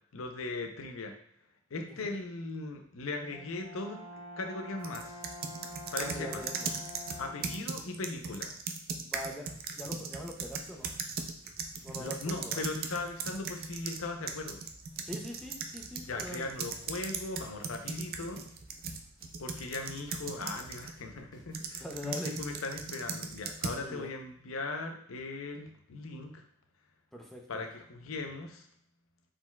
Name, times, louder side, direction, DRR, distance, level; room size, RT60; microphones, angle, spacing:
voice 1, 0.1-1.1 1.7-4.0 4.4-5.2 5.9-6.4 7.2-8.6 12.0-14.6 16.0-18.4 19.4-26.4 27.5-28.6, left 3 dB, 80° left, 4 dB, 0.6 m, -38 dB
voice 2, 1.9-2.2 6.0-6.7 9.0-11.0 11.8-12.6 15.0-16.5 21.8-22.4 23.8-24.1 27.1-27.4, equal, ahead, 0 dB, 0.5 m, -42 dB
Brass instrument, 3.3-7.7, left 1 dB, 40° left, 1.1 m, -47 dB
sound 1, 4.8-14.0 14.3-20.9 21.5-23.8, right 5 dB, 45° right, 0.4 m, -38 dB
sound 2, 10.4-21.7, right 1 dB, 20° left, 1.2 m, -60 dB
4.6 x 3.9 x 2.3 m, 0.65 s
head